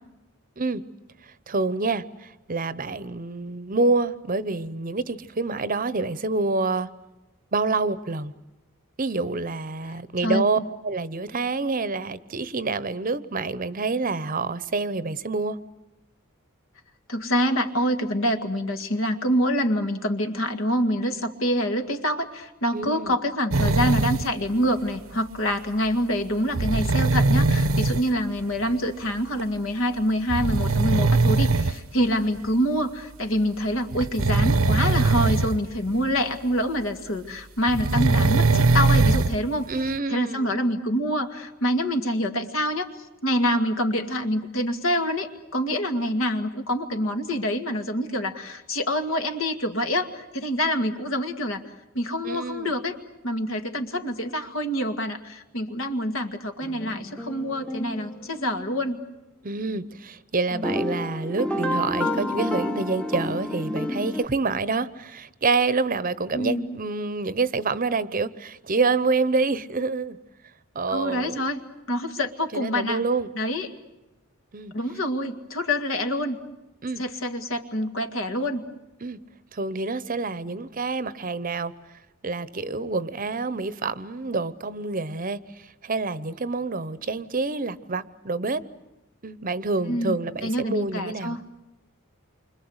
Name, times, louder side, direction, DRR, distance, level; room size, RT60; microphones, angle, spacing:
voice 1, 1.5-6.9 7.5-8.3 9.0-15.6 22.7-23.1 39.7-40.5 52.2-52.7 59.4-70.2 70.7-71.4 72.5-73.3 74.5-74.7 76.8-77.0 79.0-79.2 79.5-81.7 82.2-85.4 85.8-88.6 89.2-91.4, right 3 dB, 40° right, 0.9 m, -27 dB
voice 2, 10.2-10.6 17.1-39.7 40.1-51.6 51.9-52.9 53.2-59.0 66.3-66.7 70.9-71.6 71.9-73.0 73.4-73.7 74.7-76.4 77.0-78.6 89.9-90.2 90.4-91.4, equal, 70° left, 2.2 m, -26 dB
sound 1, 23.5-24.2 26.5-28.0 29.4-29.5 30.3-31.7 32.4-32.5 33.9-35.6 35.9-36.0 37.7-39.4 39.9-40.0, right 3 dB, 85° right, 1.0 m, -21 dB
sound 2, 56.6-59.0 60.5-64.2, left 1 dB, 5° left, 1.0 m, -30 dB
28.5 x 25.0 x 8.1 m
head